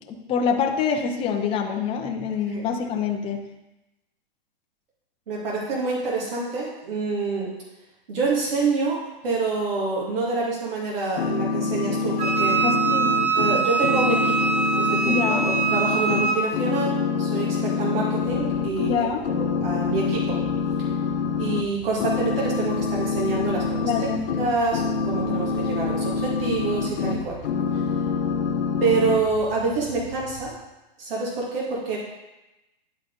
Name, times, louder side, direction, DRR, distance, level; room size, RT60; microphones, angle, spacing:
voice 1, 0.0-3.4 12.6-13.1 15.0-15.5 18.8-19.3 23.8-24.2 25.2-25.4, left 6 dB, 20° left, 2 dB, 0.7 m, -26 dB
voice 2, 5.3-7.5 8.1-12.6 13.4-14.4 14.8-20.4 21.4-24.1 24.4-27.4 28.8-30.5 31.0-32.0, right 3 dB, 70° right, -4 dB, 2.4 m, -27 dB
sound 1, 11.2-16.3 16.5-19.0 19.2-21.6 22.0-27.2 27.4-29.2, left 5 dB, 65° left, 0.9 m, -26 dB
Wind instrument woodwind instrument, 12.2-16.4, right 5 dB, 20° right, 1.1 m, -23 dB
sound 2, 18.2-30.5, right 2 dB, 40° right, 2.9 m, -42 dB
11.0 x 4.1 x 3.9 m, 0.99 s
hypercardioid pair, 140°, 29 cm